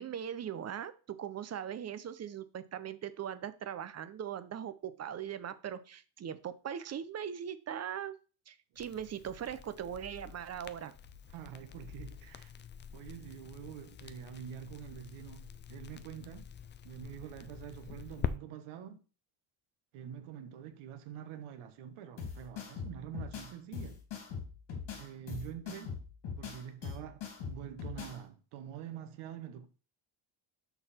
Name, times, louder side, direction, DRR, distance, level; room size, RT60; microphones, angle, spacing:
voice 1, 0.0-8.1 8.5-10.9, right 9 dB, 35° right, 0.6 m, -40 dB
Crackle, 8.8-18.3, left 8 dB, 25° left, 0.3 m, -45 dB
voice 2, 11.3-12.5 12.9-16.5 16.8-19.0 19.9-24.0 25.0-26.0 26.4-29.7, right 9 dB, 90° right, 1.4 m, -46 dB
sound 1, 22.2-28.2, left 6 dB, 70° left, 3.1 m, -42 dB
12.0 x 4.1 x 4.3 m
cardioid pair, 155°, 48 cm